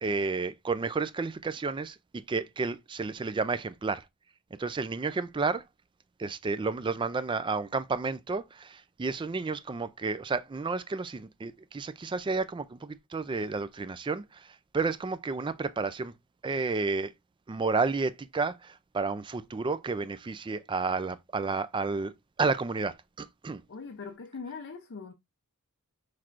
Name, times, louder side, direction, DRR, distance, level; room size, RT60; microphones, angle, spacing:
voice 1, 0.0-4.0 4.6-5.6 6.2-16.1 16.4-17.1 17.5-22.1 22.4-23.6, right 4 dB, 20° right, 0.3 m, -31 dB
voice 2, 23.7-25.1, left 4 dB, 55° left, 0.5 m, -41 dB
5.9 x 3.2 x 2.4 m
head